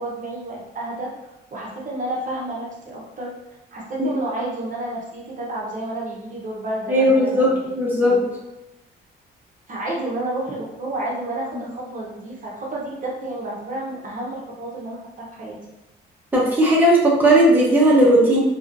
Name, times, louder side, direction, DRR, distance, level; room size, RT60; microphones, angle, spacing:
voice 1, 0.0-3.3 3.7-7.6 8.0-8.2 9.7-15.6, right 1 dB, 40° right, -4 dB, 0.9 m, -30 dB
voice 2, 6.9-8.2 11.5-11.6 16.3-18.4, right 1 dB, 10° right, -5 dB, 0.9 m, -16 dB
3.1 x 2.8 x 2.5 m, 0.98 s
cardioid pair, 90°, 20 cm